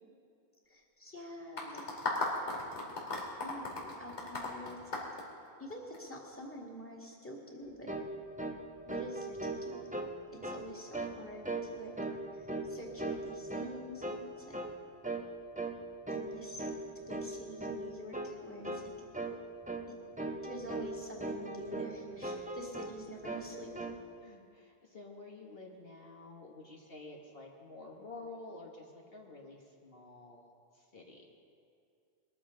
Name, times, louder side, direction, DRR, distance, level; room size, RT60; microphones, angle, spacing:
voice 1, 0.7-1.8 3.2-5.1 5.6-7.9 8.9-9.9 10.3-11.9 12.3-14.6 16.1-16.7 16.9-18.9 19.9-20.0 20.4-23.7, equal, 10° left, -1 dB, 2.1 m, -47 dB
sound 1, 1.6-6.0, left 2 dB, 85° left, 2.8 m, -36 dB
sound 2, 7.9-8.1 8.4-8.6 8.9-10.1 10.4-10.7 10.9-11.2 11.4-11.7 12.0-12.7 13.0-13.8 14.0-14.2 14.5-14.7 15.0-15.3 15.6-15.8 16.1-16.3 16.6-16.8 17.1-17.3 17.6-17.8 18.1-18.3 18.6-18.9 19.1-19.4 19.6-19.9 20.2-20.9 21.2-21.9 22.2-23.0 23.2-24.0, right 2 dB, 10° right, 0.7 m, -38 dB
voice 2, 24.2-31.3, left 2 dB, 60° left, -1 dB, 1.5 m, -50 dB
22.0 x 14.0 x 3.8 m, 2.4 s
omnidirectional pair, 1.1 m